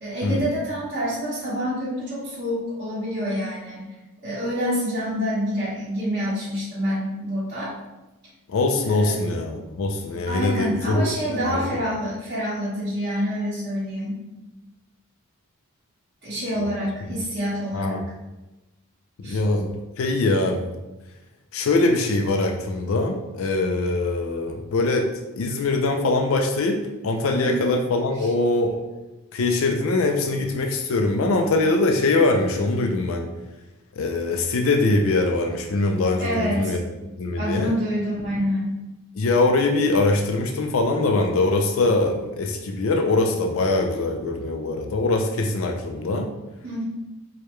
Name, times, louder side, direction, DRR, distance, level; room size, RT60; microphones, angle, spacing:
voice 1, 0.0-3.9 4.2-7.7 8.9-9.2 10.3-14.2 16.2-18.0 19.2-19.4 27.4-27.7 28.2-28.3 36.2-36.7 37.4-38.8 46.6-46.8, equal, 50° right, -13 dB, 1.3 m, -27 dB
voice 2, 8.5-11.6 16.6-16.7 17.7-18.0 19.2-20.7 21.5-25.1 25.4-28.7 29.3-33.3 33.9-36.8 37.2-37.7 39.2-46.3, left 2 dB, 65° left, 3 dB, 0.4 m, -22 dB
4.7 x 2.2 x 3.1 m, 1.0 s
head